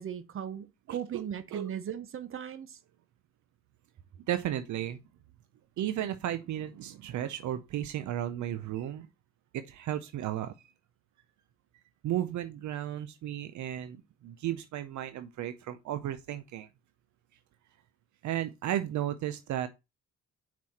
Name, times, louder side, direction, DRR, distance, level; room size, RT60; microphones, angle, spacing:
voice 1, 0.0-2.8, right 9 dB, 45° right, 0.9 m, -38 dB
voice 2, 0.9-1.2 1.5-1.7 4.3-5.0 5.8-9.1 9.5-10.5 12.0-16.7 18.2-19.7, right 12 dB, 70° right, 0.6 m, -34 dB
5.7 x 4.7 x 4.1 m
cardioid pair, 90°, 30 cm